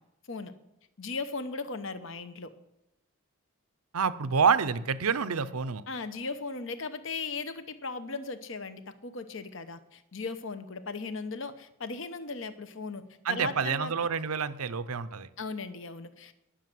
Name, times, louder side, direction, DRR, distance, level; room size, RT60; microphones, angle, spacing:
voice 1, 1.0-2.5 5.9-13.0 13.3-13.9 15.4-16.3, left 3 dB, 60° left, 11 dB, 1.0 m, -37 dB
voice 2, 3.9-5.8 13.2-15.3, right 6 dB, 85° right, 13 dB, 0.7 m, -28 dB
19.0 x 6.4 x 7.7 m, 0.89 s
head